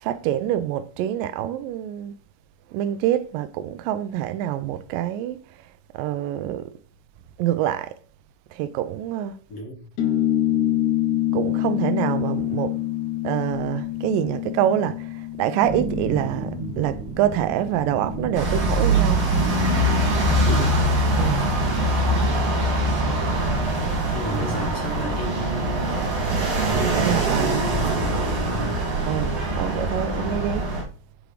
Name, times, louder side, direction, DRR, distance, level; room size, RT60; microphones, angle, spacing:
voice 1, 0.0-2.2 2.7-5.4 5.9-6.7 7.4-8.0 8.5-9.3 11.3-12.8 13.2-19.3 21.2-21.5 26.8-27.6 29.1-30.7, right 11 dB, 85° right, 2.2 m, -26 dB
voice 2, 9.5-9.8 20.4-20.8 24.1-26.1 26.7-28.7, left 1 dB, 50° left, 2.0 m, -32 dB
sound 1, 10.0-16.9, left 13 dB, 70° left, 2.1 m, -26 dB
sound 2, 15.6-29.2, right 2 dB, 35° right, 2.4 m, -36 dB
sound 3, 18.3-30.8, right 1 dB, 55° right, 3.4 m, -23 dB
8.0 x 5.0 x 3.2 m
omnidirectional pair, 3.9 m